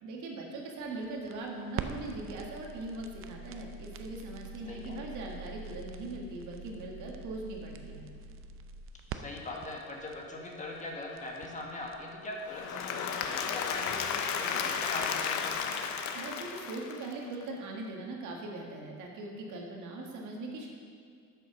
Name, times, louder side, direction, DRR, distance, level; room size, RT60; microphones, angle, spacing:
voice 1, 0.0-8.1 16.1-20.7, right 2 dB, 70° right, 0 dB, 1.7 m, -40 dB
sound 1, 0.8-16.0, right 5 dB, 45° right, 0.6 m, -45 dB
voice 2, 9.1-15.7, left 2 dB, 25° left, -1 dB, 1.5 m, -41 dB
Applause / Crowd, 12.4-17.4, left 6 dB, 65° left, 0.8 m, -33 dB
8.4 x 6.9 x 6.0 m, 2.2 s
cardioid pair, 120°, 31 cm